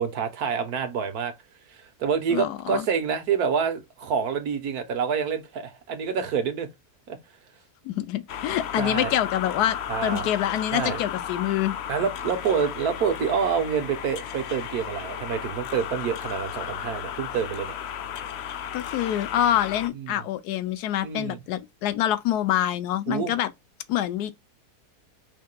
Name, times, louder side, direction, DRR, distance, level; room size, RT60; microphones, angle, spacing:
voice 1, 0.0-1.3 1.7-6.7 7.1-7.2 8.8-9.1 9.9-10.3 10.7-11.0 11.9-17.7 19.9-20.2 21.0-21.4 23.1-23.3, right 6 dB, 70° right, 1.6 m, -27 dB
voice 2, 2.3-2.8 7.8-11.8 18.7-23.5 23.9-24.4, left 12 dB, 80° left, 1.2 m, -26 dB
sound 1, 8.3-19.9, left 9 dB, 60° left, 0.7 m, -34 dB
5.5 x 3.5 x 2.3 m
omnidirectional pair, 1.7 m